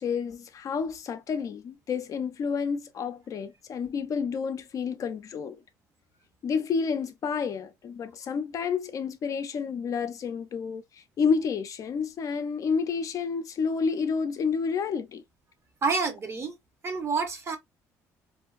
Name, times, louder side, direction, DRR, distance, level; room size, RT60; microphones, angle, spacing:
voice 1, 0.0-5.6 6.4-15.2, left 5 dB, 45° left, 0.4 m, -30 dB
voice 2, 15.8-16.5 16.8-17.6, right 4 dB, 35° right, 0.8 m, -28 dB
2.5 x 2.3 x 2.3 m
supercardioid pair, 80°, 8 cm